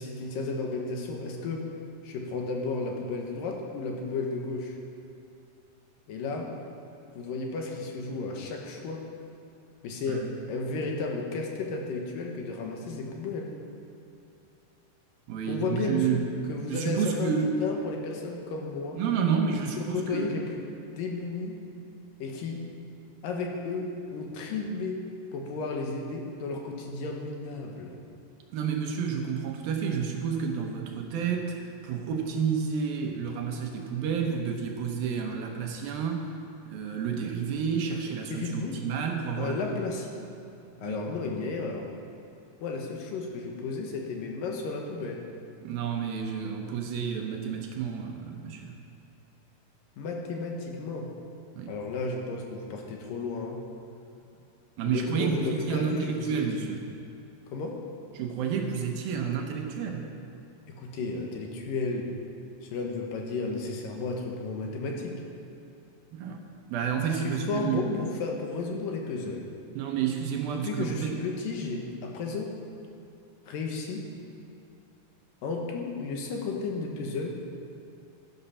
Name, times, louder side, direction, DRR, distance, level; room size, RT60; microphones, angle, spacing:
voice 1, 0.0-1.7 2.0-4.8 6.1-6.5 7.2-9.0 9.8-13.5 15.5-19.0 19.8-20.7 21.0-21.6 22.2-22.6 23.2-25.0 25.3-28.0 38.3-38.8 39.4-40.1 40.8-41.9 42.6-45.2 50.0-51.1 51.7-53.6 54.9-56.6 57.5-57.8 60.8-62.1 62.6-65.2 67.2-69.5 70.5-72.6 73.5-74.1 75.4-77.3, left 3 dB, 70° left, 1 dB, 2.6 m, -33 dB
voice 2, 15.3-16.3 16.7-17.6 19.0-20.4 28.5-36.4 36.7-39.8 40.8-41.0 45.6-48.8 51.6-51.7 54.8-56.8 58.1-60.2 66.1-66.4 66.7-67.9 69.8-71.2, right 7 dB, 70° right, 2 dB, 2.6 m, -30 dB
12.0 x 11.0 x 5.7 m, 2.7 s
omnidirectional pair, 4.7 m